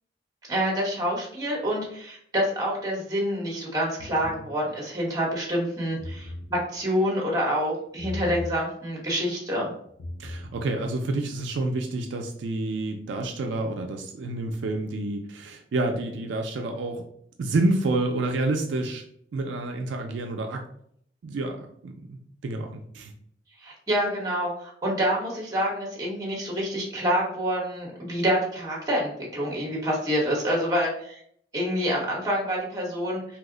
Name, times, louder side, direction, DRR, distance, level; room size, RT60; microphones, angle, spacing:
voice 1, 0.5-9.7 23.6-31.2 31.5-33.4, equal, 20° right, -3 dB, 0.8 m, -27 dB
sound 1, 4.0-4.5 5.9-6.5 8.0-8.5 9.9-10.5, left 1 dB, 85° left, 0.7 m, -36 dB
voice 2, 10.2-17.0 17.4-19.0 19.3-20.6 21.2-23.1, right 2 dB, 70° right, 3 dB, 0.3 m, -29 dB
2.9 x 2.0 x 3.6 m, 0.67 s
head